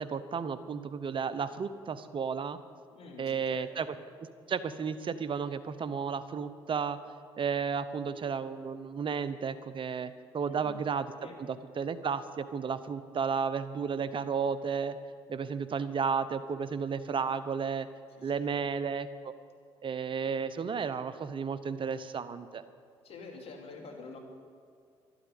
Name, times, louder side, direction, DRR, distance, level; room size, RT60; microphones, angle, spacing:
voice 1, 0.0-2.6 3.2-3.9 4.5-7.0 7.4-11.1 11.4-14.9 15.3-17.9 18.2-19.1 19.8-22.6, right 6 dB, 50° right, 13 dB, 0.8 m, -33 dB
voice 2, 2.9-3.9 7.9-8.1 10.4-10.8 11.2-11.4 18.1-18.6 23.0-24.2, left 4 dB, 60° left, 2 dB, 2.9 m, -48 dB
12.5 x 8.8 x 10.0 m, 2.2 s
supercardioid pair, 60°, 11 cm